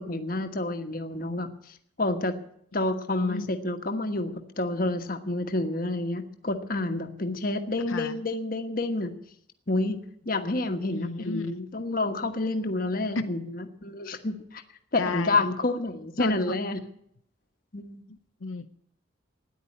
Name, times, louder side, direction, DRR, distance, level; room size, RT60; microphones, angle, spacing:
voice 1, 0.0-2.4 2.7-9.1 9.7-14.6 14.9-16.8 17.7-18.0, left 2 dB, 45° left, 7 dB, 1.4 m, -29 dB
voice 2, 10.9-11.6 13.2-13.3 15.0-15.4 16.2-16.4 18.1-18.7, left 3 dB, 85° left, 8 dB, 0.7 m, -33 dB
13.5 x 10.0 x 9.8 m, 0.71 s
head